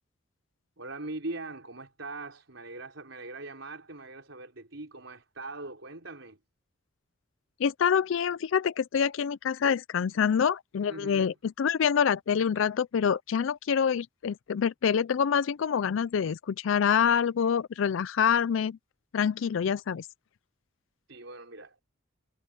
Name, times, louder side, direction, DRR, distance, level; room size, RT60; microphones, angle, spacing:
voice 1, 0.8-6.4 10.9-11.4 21.1-21.7, right 2 dB, 70° right, 4.5 m, -41 dB
voice 2, 7.6-18.8 19.1-20.1, left 7 dB, 70° left, 0.4 m, -26 dB
head